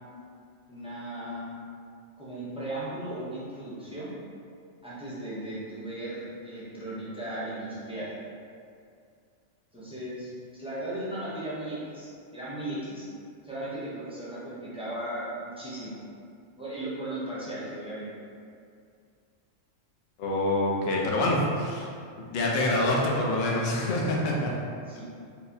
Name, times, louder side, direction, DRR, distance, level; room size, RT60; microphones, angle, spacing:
voice 1, 0.7-1.5 2.2-4.1 4.8-8.1 9.7-13.1 13.4-16.0 16.6-18.1 24.9-25.1, right 1 dB, 10° right, -10 dB, 0.3 m, -36 dB
voice 2, 20.2-21.9 22.2-24.5, left 1 dB, 55° left, -2 dB, 0.6 m, -26 dB
4.5 x 2.1 x 2.6 m, 2.3 s
omnidirectional pair, 1.3 m